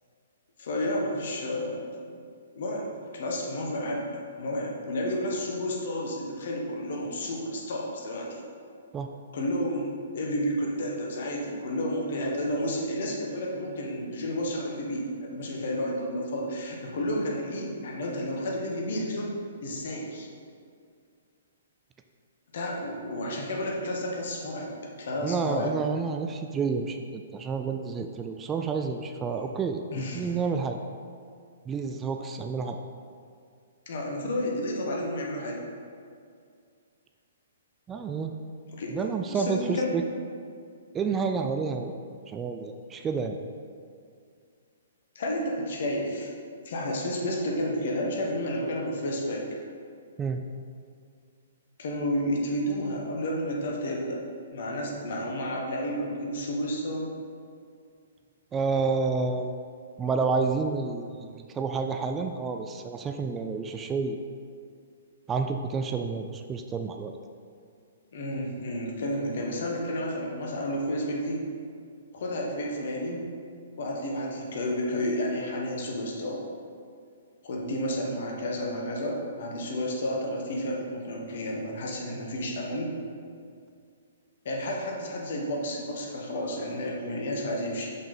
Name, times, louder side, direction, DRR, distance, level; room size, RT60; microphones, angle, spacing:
voice 1, 0.6-1.9 2.5-4.1 4.4-8.4 9.3-19.3 19.6-20.3 22.5-25.8 29.9-30.3 33.9-35.6 38.7-39.0 39.3-40.1 45.1-46.3 46.6-49.4 51.8-54.2 54.5-57.1 68.1-71.4 72.1-73.3 73.8-76.4 77.4-82.9 84.4-87.9, left 1 dB, 55° left, -1 dB, 1.3 m, -31 dB
voice 2, 25.2-30.8 31.7-32.8 37.9-38.3 38.9-40.0 40.9-43.4 50.2-50.4 58.5-59.5 60.0-64.2 65.3-67.1, right 5 dB, 15° right, 5 dB, 0.3 m, -29 dB
6.1 x 5.3 x 4.2 m, 2.2 s
figure-of-eight pair, 120°, 0 cm